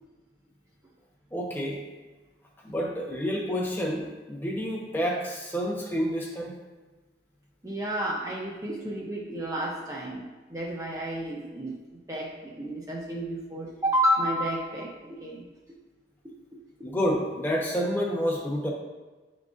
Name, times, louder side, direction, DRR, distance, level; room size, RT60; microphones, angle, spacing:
voice 1, 1.3-1.8 2.6-6.6 16.8-18.7, equal, 10° left, -2 dB, 0.9 m, -29 dB
voice 2, 7.6-11.8 12.1-15.4 16.5-16.9, equal, 20° right, -3 dB, 0.6 m, -31 dB
10.0 x 3.8 x 2.5 m, 1.3 s
head